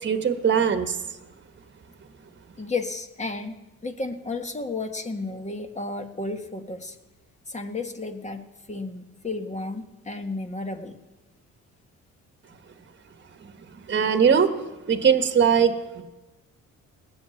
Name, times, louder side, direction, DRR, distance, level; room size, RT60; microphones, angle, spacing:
voice 1, 0.0-1.0 13.7-14.5 14.9-16.0, right 7 dB, 40° right, 8 dB, 1.3 m, -21 dB
voice 2, 2.6-3.6 3.8-7.0 7.5-11.0, left 3 dB, 25° left, 6 dB, 1.6 m, -32 dB
19.0 x 8.6 x 7.1 m, 1.1 s
cardioid pair, 90°, 30 cm